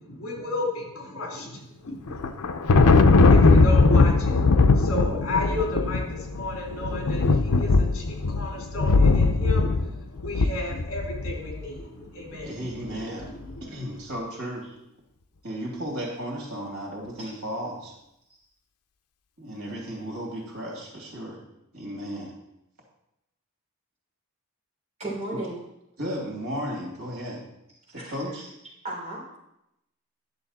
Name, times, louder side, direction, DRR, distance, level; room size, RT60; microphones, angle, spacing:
voice 1, 0.0-2.5 3.3-12.6 13.4-13.9, left 2 dB, 65° left, -1 dB, 2.9 m, -33 dB
Thunder, 2.1-11.5, left 3 dB, 90° left, 0.6 m, -19 dB
voice 2, 12.4-13.3 13.6-14.6 15.4-17.9 19.4-21.4 21.7-22.3 25.3-25.4 26.0-27.4 27.9-28.4, equal, 70° right, -2 dB, 2.7 m, -34 dB
voice 3, 25.0-25.6 27.9-28.5 28.8-29.4, right 2 dB, 30° right, -5 dB, 3.7 m, -35 dB
10.5 x 7.1 x 4.2 m, 0.84 s
head